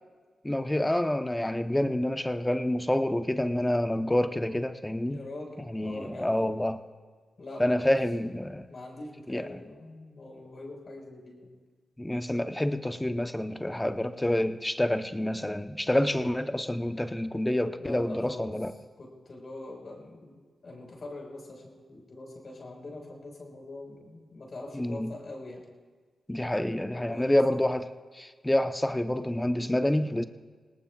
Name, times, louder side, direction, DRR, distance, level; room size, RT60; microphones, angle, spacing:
voice 1, 0.4-5.2 5.7-6.8 7.6-8.7 9.3-9.6 12.0-18.7 24.7-25.1 26.3-27.8 28.1-30.2, left 1 dB, 10° left, 8 dB, 0.9 m, -28 dB
voice 2, 5.1-6.6 7.4-8.0 8.3-11.5 15.9-16.4 17.8-18.5 19.0-25.6 26.7-27.6, left 2 dB, 55° left, 0 dB, 4.8 m, -43 dB
25.0 x 18.5 x 2.4 m, 1.5 s
cardioid pair, 60°, 0 cm